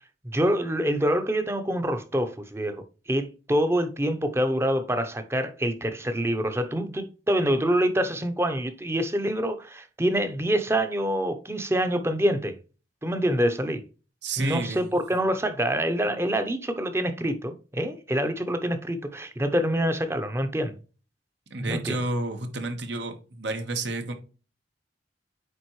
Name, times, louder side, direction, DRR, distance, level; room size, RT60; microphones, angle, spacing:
voice 1, 0.2-12.6 13.0-13.8 14.4-20.7 21.6-22.0, equal, 15° right, 0.7 m, -26 dB
voice 2, 14.2-14.8 21.5-24.1, right 2 dB, 75° right, 1.2 m, -31 dB
9.0 x 3.7 x 3.1 m
head